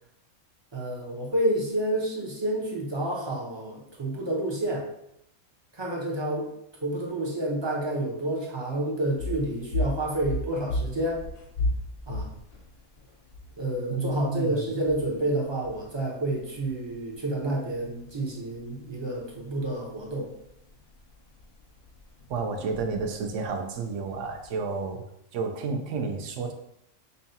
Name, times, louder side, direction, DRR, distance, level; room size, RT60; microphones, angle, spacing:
voice 1, 0.7-4.9 5.7-6.5 6.8-11.2 12.1-12.3 13.6-20.3, right 1 dB, 25° right, -3 dB, 0.6 m, -29 dB
sound 1, 9.0-24.9, left 1 dB, 80° left, 1.3 m, -37 dB
voice 2, 13.9-14.6 22.3-26.5, right 4 dB, 70° right, 4 dB, 0.8 m, -31 dB
5.4 x 2.3 x 2.7 m, 0.77 s
omnidirectional pair, 1.4 m